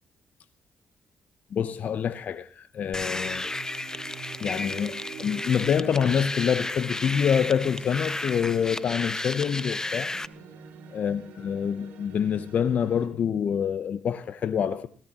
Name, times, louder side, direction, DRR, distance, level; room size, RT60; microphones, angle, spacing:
voice 1, 1.5-3.5 4.4-10.1 10.9-14.9, left 7 dB, 60° left, 0.9 m, -26 dB
sound 1, 2.8-13.1, right 7 dB, 80° right, 4.0 m, -46 dB
sound 2, 2.9-10.3, left 2 dB, 20° left, 1.1 m, -33 dB
24.0 x 18.0 x 3.0 m
hypercardioid pair, 45°, 3 cm